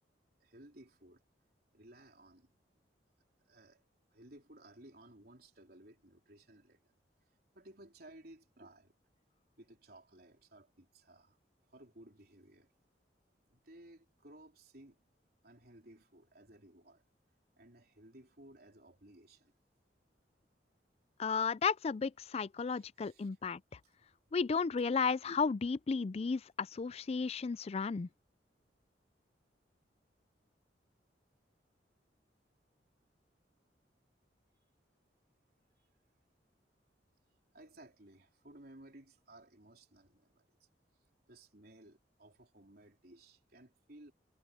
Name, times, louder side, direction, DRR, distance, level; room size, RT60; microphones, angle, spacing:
voice 1, 0.4-1.2 1.7-2.5 3.4-3.8 4.1-6.9 7.3-8.9 9.6-11.4 11.7-12.7 13.5-15.0 15.4-17.0 17.6-19.5 22.7-23.4 35.8-35.9 37.5-40.7 41.3-44.1, right 1 dB, 60° right, 4.1 m, -58 dB
voice 2, 21.2-23.6 24.3-28.1, left 5 dB, 35° left, 0.4 m, -33 dB
head